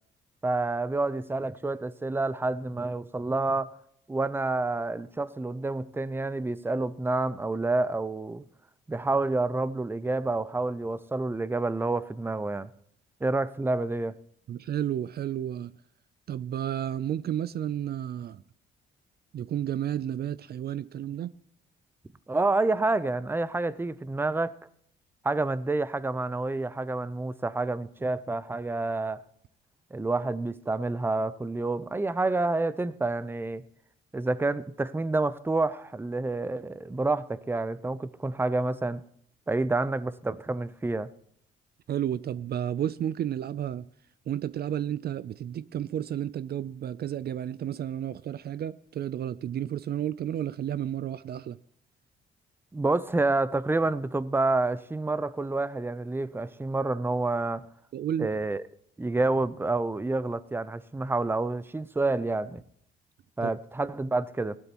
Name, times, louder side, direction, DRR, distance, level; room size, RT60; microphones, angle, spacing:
voice 1, 0.4-3.7 4.1-8.4 8.9-12.7 13.2-14.2 22.3-24.5 25.2-29.2 29.9-33.6 34.1-39.0 39.5-41.1 52.7-57.7 58.2-58.6 59.0-62.6 63.4-64.6, right 2 dB, 10° right, 0.6 m, -28 dB
voice 2, 14.5-15.7 16.3-18.4 19.3-21.3 41.9-43.9 44.3-51.6 57.9-58.3 63.4-63.5, right 10 dB, 55° right, 0.5 m, -32 dB
16.5 x 12.5 x 3.0 m
cardioid pair, 90°, 20 cm